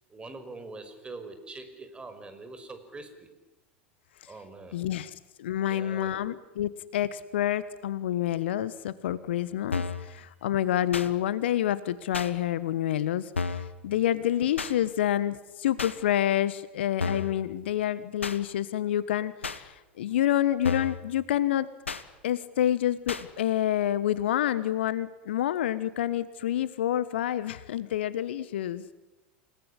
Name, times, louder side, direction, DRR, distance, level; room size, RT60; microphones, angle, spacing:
voice 1, 0.1-3.3 4.3-4.8 5.6-6.2 10.2-10.3, right 3 dB, 15° right, 8 dB, 5.4 m, -44 dB
voice 2, 4.7-5.1 5.4-21.7 22.2-28.8, left 12 dB, 70° left, 17 dB, 1.3 m, -28 dB
sound 1, 9.7-10.1 10.9-11.1 12.1-12.3 13.3-13.7 14.6-14.7 15.8-16.0 17.0-17.4 18.2-18.4 19.4-19.6 20.6-21.0 21.9-22.0 23.1-23.2, left 4 dB, 85° left, 1.4 m, -31 dB
29.0 x 19.5 x 10.0 m, 1.0 s
figure-of-eight pair, 85°, 6 cm